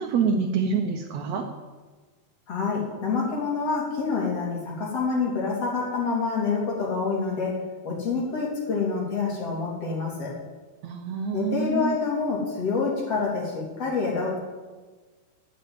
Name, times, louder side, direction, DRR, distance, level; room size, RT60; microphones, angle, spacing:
voice 1, 0.0-1.4 10.8-12.0, right 5 dB, 65° right, 2 dB, 2.0 m, -26 dB
voice 2, 2.5-10.4 11.3-14.4, left 4 dB, 50° left, -3 dB, 4.2 m, -27 dB
12.0 x 7.9 x 9.2 m, 1.3 s
omnidirectional pair, 3.6 m